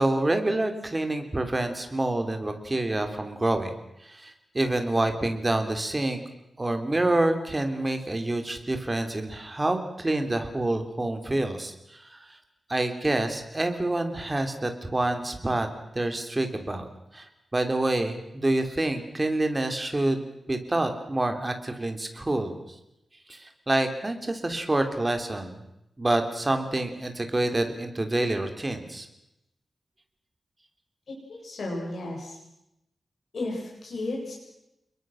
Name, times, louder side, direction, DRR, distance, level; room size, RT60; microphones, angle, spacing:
voice 1, 0.0-3.7 4.0-6.2 6.6-12.3 12.7-15.7 15.9-16.9 17.1-22.6 23.3-25.6 26.0-29.1, right 2 dB, 20° right, 6 dB, 3.2 m, -27 dB
voice 2, 31.1-32.4 33.3-34.3, left 2 dB, 65° left, -2 dB, 7.4 m, -34 dB
29.5 x 21.5 x 6.4 m, 0.85 s
wide cardioid pair, 135°, 0 cm